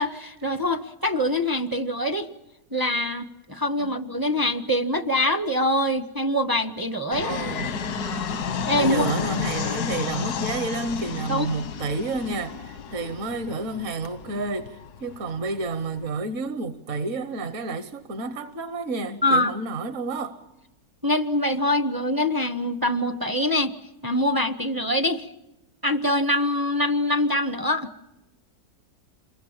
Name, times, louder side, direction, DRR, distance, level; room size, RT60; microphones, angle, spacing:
voice 1, 0.0-2.3 2.7-7.3 8.7-9.1 11.3-11.5 19.2-19.5 21.0-23.7 24.0-25.3 25.8-27.9, left 1 dB, 20° right, 0.6 m, -24 dB
Fixed-wing aircraft airplane, 7.1-16.1, left 6 dB, 85° left, 1.6 m, -32 dB
voice 2, 7.2-7.8 8.7-20.4, right 3 dB, 55° right, 1.4 m, -30 dB
28.0 x 23.0 x 7.3 m
omnidirectional pair, 1.7 m